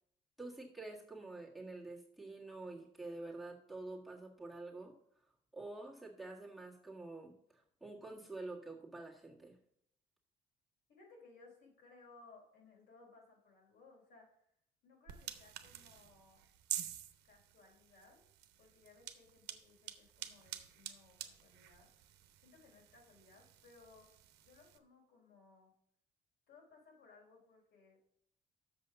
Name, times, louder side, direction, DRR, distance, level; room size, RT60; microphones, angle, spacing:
voice 1, 0.4-4.9 5.2-9.6, right 2 dB, ahead, -1 dB, 1.7 m, -48 dB
voice 2, 10.9-14.5 14.8-16.4 17.2-18.2 18.6-22.1 22.4-24.1 24.4-25.7 26.5-28.0, left 3 dB, 75° left, -1 dB, 3.8 m, -62 dB
sound 1, 15.1-24.8, right 12 dB, 85° right, 0.9 m, -49 dB
6.9 x 5.5 x 6.9 m, 0.70 s
cardioid pair, 110°, 17 cm